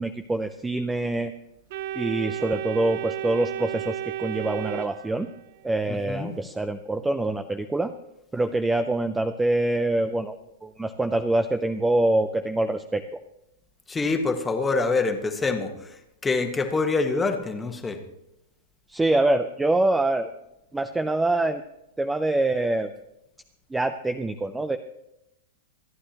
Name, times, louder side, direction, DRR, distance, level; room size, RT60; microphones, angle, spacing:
voice 1, 0.0-1.3 2.0-5.3 5.6-7.9 8.3-10.4 10.6-13.2 18.9-20.3 20.7-21.6 22.0-22.9 23.7-24.8, right 2 dB, 5° right, 9 dB, 0.5 m, -25 dB
Organ, 1.7-5.6, right 13 dB, 55° right, 0.7 m, -33 dB
voice 2, 5.9-6.3 13.9-15.9 16.2-18.0, left 3 dB, 10° left, 5 dB, 1.3 m, -25 dB
26.0 x 9.9 x 2.9 m, 0.86 s
supercardioid pair, 150°, 0 cm